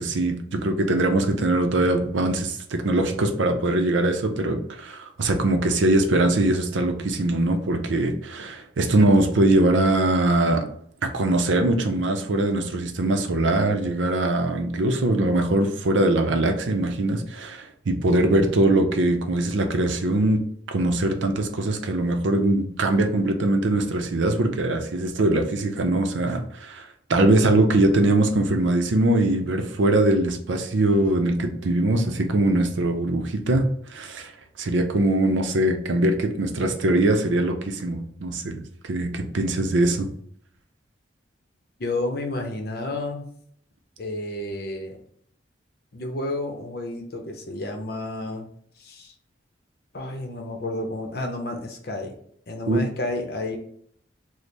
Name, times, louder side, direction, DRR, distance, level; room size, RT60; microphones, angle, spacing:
voice 1, 0.0-10.6 11.0-20.4 20.7-26.8 27.1-33.7 33.9-34.3 34.6-40.1 52.7-52.8, right 2 dB, 75° right, 5 dB, 0.6 m, -22 dB
voice 2, 41.8-43.2 44.0-45.0 45.9-48.5 48.8-49.1 49.9-52.2 52.5-53.6, left 2 dB, 50° left, 3 dB, 0.6 m, -31 dB
3.2 x 2.1 x 4.1 m, 0.64 s
head